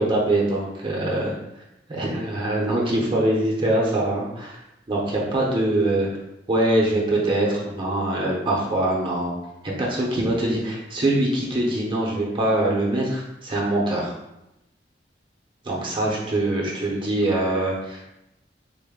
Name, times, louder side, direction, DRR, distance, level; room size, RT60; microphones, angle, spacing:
voice 1, 0.0-1.4 1.9-4.6 4.9-6.1 6.5-9.4 9.6-14.1 15.6-18.1, right 1 dB, 30° right, -3 dB, 0.6 m, -23 dB
3.9 x 2.1 x 3.5 m, 0.89 s
head